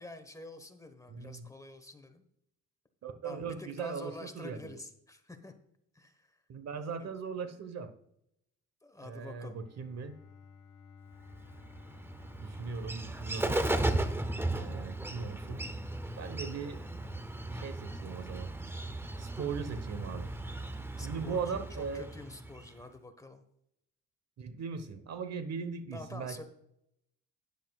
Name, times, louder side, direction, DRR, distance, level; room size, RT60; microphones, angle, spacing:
voice 1, 0.0-2.2 3.2-5.5 5.9-6.4 6.8-7.1 8.8-9.5 21.0-23.4 25.9-26.4, left 2 dB, 10° left, 7 dB, 1.3 m, -47 dB
voice 2, 1.1-1.5 3.0-4.8 6.5-7.9 9.0-10.2 12.4-13.6 14.5-15.6 16.2-16.8 17.5-18.5 19.2-20.3 21.0-22.1 24.4-26.4, right 5 dB, 60° right, 11 dB, 1.1 m, -39 dB
Bowed string instrument, 9.3-14.2, left 6 dB, 75° left, 1.5 m, -56 dB
Bird, 11.3-22.8, right 1 dB, 10° right, 0.6 m, -36 dB
12.0 x 10.0 x 2.4 m, 0.76 s
cardioid pair, 90°, 30 cm